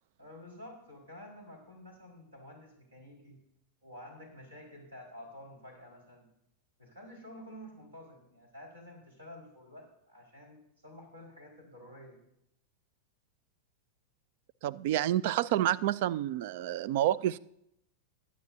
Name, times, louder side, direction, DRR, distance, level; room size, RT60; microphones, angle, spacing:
voice 1, 0.2-3.4 3.8-6.3 6.8-12.2, left 1 dB, 75° right, 4.7 m, -50 dB
voice 2, 14.6-17.4, right 13 dB, 50° right, 0.4 m, -29 dB
22.0 x 9.7 x 2.7 m
figure-of-eight pair, 90°, 0 cm